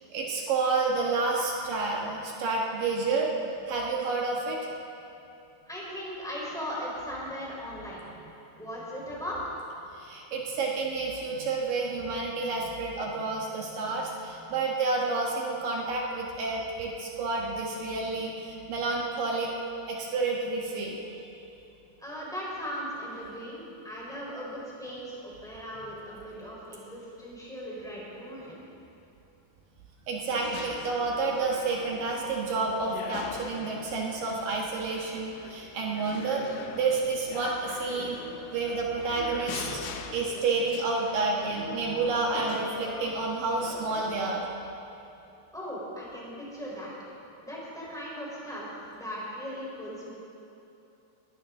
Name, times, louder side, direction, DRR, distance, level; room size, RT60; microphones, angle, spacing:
voice 1, 0.1-3.3 3.7-4.6 10.0-19.5 19.9-21.0 30.1-36.4 36.7-38.2 38.5-39.8 40.1-44.5, right 3 dB, 70° right, -2 dB, 2.2 m, -29 dB
voice 2, 5.7-8.1 8.6-9.6 22.0-28.6 45.5-46.9 47.4-50.1, equal, ahead, -6 dB, 3.1 m, -38 dB
sound 1, 30.3-44.4, left 7 dB, 75° left, 2.9 m, -42 dB
20.5 x 16.0 x 3.8 m, 2.9 s
omnidirectional pair, 5.9 m